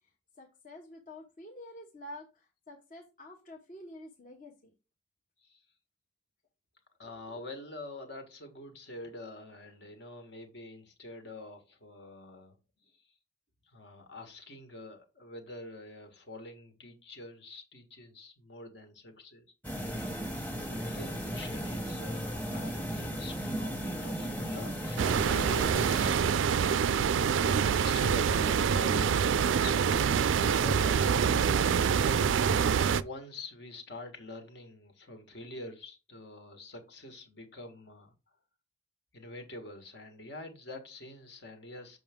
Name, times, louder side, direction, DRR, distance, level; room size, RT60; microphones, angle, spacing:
voice 1, 0.4-4.7 7.0-7.4, left 1 dB, 45° left, 1.0 m, -49 dB
voice 2, 7.0-12.6 12.8-13.2 13.6-19.9 20.6-26.7 27.2-31.6 32.9-38.1 39.1-42.0, left 2 dB, 65° left, 1.6 m, -46 dB
sound 1, 19.6-26.1, equal, 10° left, 1.1 m, -36 dB
sound 2, 25.0-33.0, right 7 dB, 85° right, 0.4 m, -26 dB
7.0 x 5.5 x 3.6 m
head